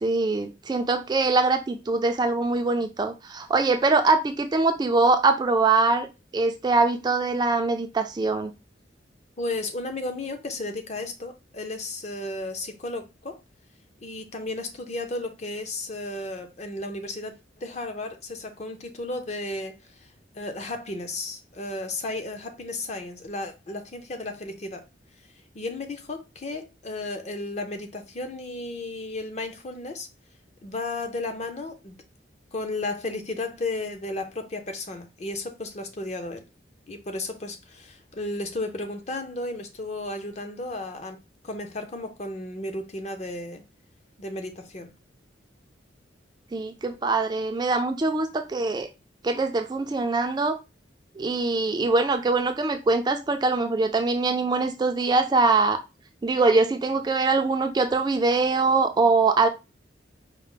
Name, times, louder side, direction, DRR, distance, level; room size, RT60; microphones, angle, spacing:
voice 1, 0.0-6.1 6.3-8.5 46.5-48.9 49.2-50.6 51.2-55.8 56.2-59.5, right 3 dB, 20° right, 0.3 m, -23 dB
voice 2, 9.4-13.4 14.0-20.1 20.3-24.9 25.5-30.1 30.6-32.0 32.5-36.4 36.9-41.2 41.4-43.6 44.2-44.9, left 2 dB, 35° left, 0.6 m, -34 dB
4.6 x 2.0 x 3.6 m
head